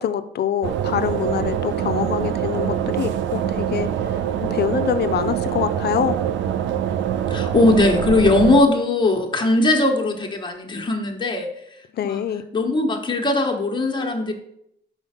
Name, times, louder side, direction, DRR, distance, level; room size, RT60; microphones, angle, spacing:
voice 1, 0.0-3.9 4.4-6.2 11.9-12.4, left 9 dB, 55° left, 12 dB, 0.5 m, -25 dB
sound 1, 0.6-8.6, right 9 dB, 70° right, 0.5 m, -24 dB
voice 2, 7.3-11.5 12.0-12.2 12.5-14.3, left 2 dB, 25° left, 2 dB, 1.3 m, -19 dB
5.6 x 4.3 x 5.8 m, 0.75 s
cardioid pair, 90°, 20 cm